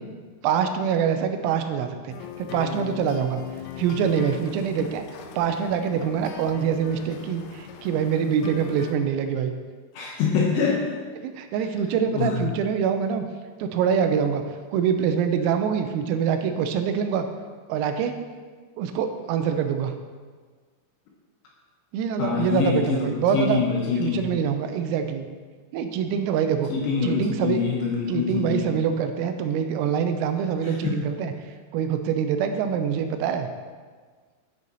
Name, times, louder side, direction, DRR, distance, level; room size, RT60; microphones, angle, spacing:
voice 1, 0.4-3.4 3.8-5.0 5.4-9.5 11.2-13.3 13.6-14.4 14.7-17.3 17.7-18.2 18.8-19.9 21.9-23.6 24.0-25.3 25.7-26.7 27.0-27.6 28.1-31.3 31.7-33.5, right 7 dB, 85° right, 7 dB, 3.4 m, -25 dB
sound 1, 2.1-9.0, left 9 dB, 85° left, 3.4 m, -39 dB
voice 2, 9.9-11.0 12.1-12.3 22.2-24.3 26.7-28.8 30.6-31.0, left 5 dB, 70° left, -3 dB, 2.9 m, -25 dB
10.5 x 8.3 x 4.0 m, 1.5 s
omnidirectional pair, 6.0 m